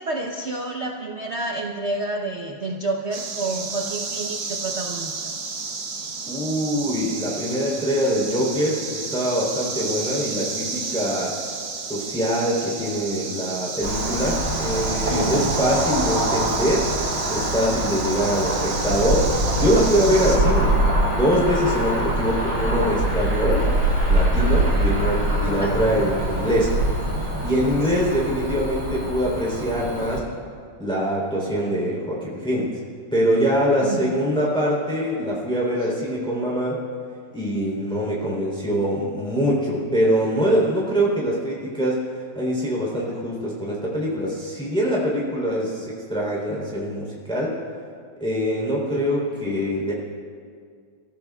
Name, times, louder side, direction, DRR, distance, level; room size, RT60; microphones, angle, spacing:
voice 1, 0.0-5.2 14.2-14.3 15.1-15.5 25.6-25.8 27.9-28.1 33.8-34.1, right 2 dB, 45° right, 0 dB, 1.0 m, -29 dB
sound 1, 3.1-20.4, right 4 dB, 85° right, 2.1 m, -31 dB
voice 2, 6.3-11.3 11.8-16.9 17.3-20.8 21.0-23.7 24.1-26.7 27.4-30.2 30.8-32.8 33.1-36.8 37.3-47.6 48.2-49.9, equal, ahead, -4 dB, 3.7 m, -23 dB
Cricket / Motor vehicle (road), 13.8-30.2, right 1 dB, 65° right, 4.4 m, -24 dB
29.5 x 15.5 x 2.4 m, 2.2 s
omnidirectional pair, 2.1 m